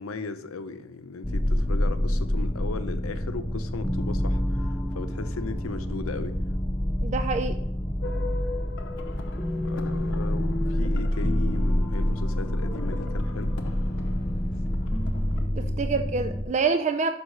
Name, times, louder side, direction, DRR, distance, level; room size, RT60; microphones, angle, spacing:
voice 1, 0.0-6.3 9.6-13.5 15.6-15.9, left 4 dB, 90° left, 10 dB, 0.7 m, -37 dB
sound 1, 1.2-16.4, left 1 dB, 10° left, 0.6 m, -27 dB
voice 2, 7.0-7.6 15.6-17.1, right 4 dB, 35° right, 8 dB, 0.4 m, -26 dB
sound 2, 8.0-15.5, left 3 dB, 60° left, 0.8 m, -41 dB
6.4 x 5.2 x 5.3 m, 0.78 s
head